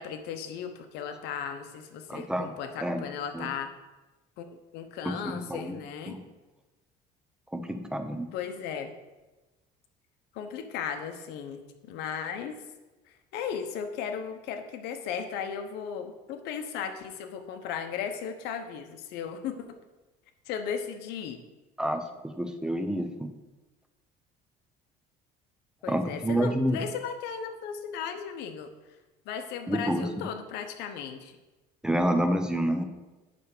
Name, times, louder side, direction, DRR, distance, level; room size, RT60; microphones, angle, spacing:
voice 1, 0.0-3.7 4.4-6.2 8.3-8.9 10.3-12.5 13.3-19.8 20.5-21.4 25.8-28.7 29.2-31.3, left 7 dB, 75° left, 7 dB, 1.0 m, -36 dB
voice 2, 2.1-2.5 2.8-3.0 3.3-3.5 5.0-5.8 6.1-6.2 7.5-8.3 21.8-23.3 25.9-26.8 29.7-30.1 31.8-32.8, right 1 dB, 5° right, 7 dB, 0.8 m, -28 dB
9.4 x 3.4 x 6.7 m, 1.1 s
cardioid pair, 125°, 17 cm